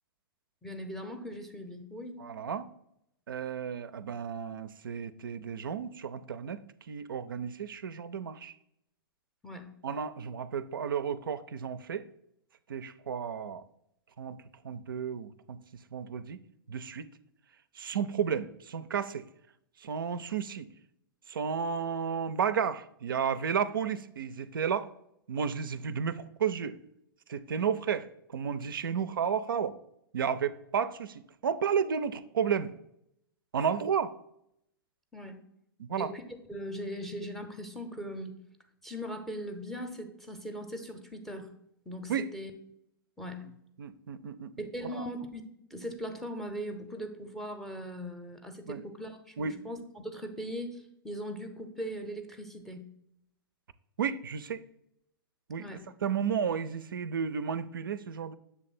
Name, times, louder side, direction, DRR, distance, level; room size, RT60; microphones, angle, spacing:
voice 1, 0.6-2.2 9.4-9.7 35.1-35.4 36.0-36.2 36.5-38.4 38.8-41.5 41.9-42.5 43.2-43.5 44.6-45.4 45.7-52.9 55.6-55.9, equal, 5° left, 5 dB, 0.6 m, -40 dB
voice 2, 2.2-2.7 3.3-8.5 9.8-12.0 12.7-13.6 14.2-16.4 16.7-17.1 17.8-19.2 19.8-20.7 21.3-24.9 25.3-26.8 27.3-29.8 30.1-32.7 33.5-34.1 35.8-36.1 42.1-42.3 43.8-44.5 45.0-45.1 48.7-48.8 49.4-49.6 54.0-54.6 55.5-55.7 56.0-58.4, right 7 dB, 65° right, 13 dB, 0.4 m, -32 dB
7.2 x 3.3 x 4.1 m, 0.77 s
figure-of-eight pair, 105°, 12 cm